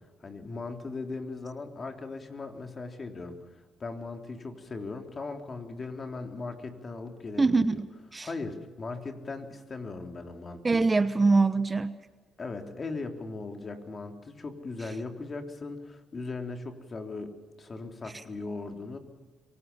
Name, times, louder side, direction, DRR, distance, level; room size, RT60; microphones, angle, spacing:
voice 1, 0.2-7.8 8.2-10.9 12.4-19.0, left 3 dB, 35° left, 5 dB, 3.5 m, -38 dB
voice 2, 7.4-7.8 8.1-8.3 10.6-11.9, right 3 dB, 25° right, 13 dB, 1.0 m, -23 dB
25.0 x 19.0 x 7.0 m, 1.3 s
supercardioid pair, 70°, 0 cm